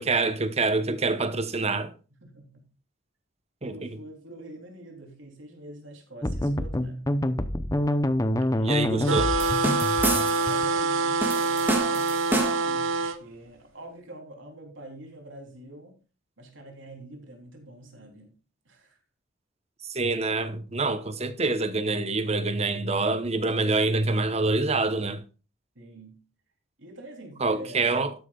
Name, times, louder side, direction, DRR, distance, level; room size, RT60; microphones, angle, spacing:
voice 1, 0.0-1.9 3.6-3.7 8.6-9.3 19.9-25.2 27.4-28.1, right 3 dB, 35° right, 1.0 m, -26 dB
voice 2, 2.2-2.6 3.6-7.0 8.5-9.5 10.4-16.0 16.4-18.3 18.6-19.0 25.7-26.2 26.8-28.0, right 1 dB, 75° right, 3.4 m, -45 dB
sound 1, 6.2-10.8, left 1 dB, 20° left, 0.7 m, -26 dB
sound 2, 9.0-13.2, right 3 dB, 90° right, 1.0 m, -25 dB
sound 3, 9.4-10.6 11.2-12.8, right 1 dB, 10° right, 1.8 m, -29 dB
13.0 x 10.5 x 2.4 m
head